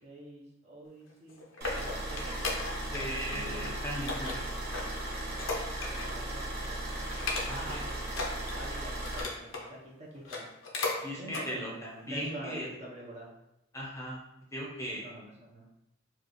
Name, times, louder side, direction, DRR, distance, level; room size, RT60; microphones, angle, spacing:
voice 1, 0.0-1.5 1.7-2.5 5.9-7.0 7.5-8.0 8.5-10.5 11.2-13.3 14.9-15.7, right 1 dB, 35° right, -3 dB, 0.8 m, -46 dB
sound 1, 1.1-3.1 3.3-3.7 4.1-6.2 6.6-6.7 7.1-7.8 8.1-9.7 10.2-11.0 11.3-11.5 12.0-12.1, left 3 dB, 80° left, 0.7 m, -36 dB
sound 2, 1.6-9.2, right 1 dB, 55° right, 1.2 m, -37 dB
voice 2, 2.9-4.4 7.5-7.8 11.0-12.7 13.7-14.2 14.5-15.0, equal, 15° left, -4 dB, 0.8 m, -38 dB
4.7 x 2.4 x 3.0 m, 0.87 s
head